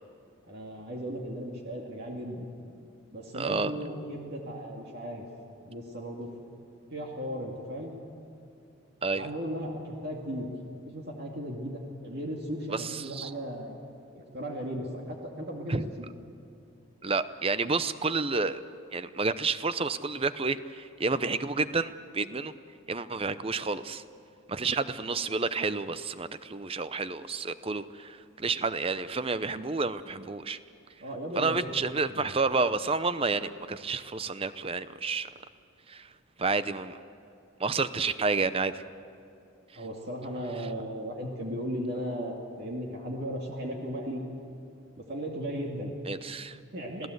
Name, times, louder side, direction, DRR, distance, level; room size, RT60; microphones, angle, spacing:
voice 1, 0.5-2.5 3.1-5.2 5.7-6.3 6.9-7.9 9.1-10.5 10.8-13.8 14.1-16.1 31.0-31.8 32.1-32.3 39.7-44.2 45.0-46.0 46.7-47.1, equal, 50° right, 0 dB, 2.4 m, -36 dB
voice 2, 3.3-3.7 9.0-9.3 12.7-13.3 15.7-15.9 17.0-18.6 18.9-22.5 22.9-24.0 24.5-30.6 31.4-35.3 35.9-36.1 36.4-37.0 37.6-38.8 46.1-46.6, right 4 dB, 25° right, 13 dB, 0.7 m, -30 dB
27.5 x 17.5 x 8.0 m, 2.6 s
head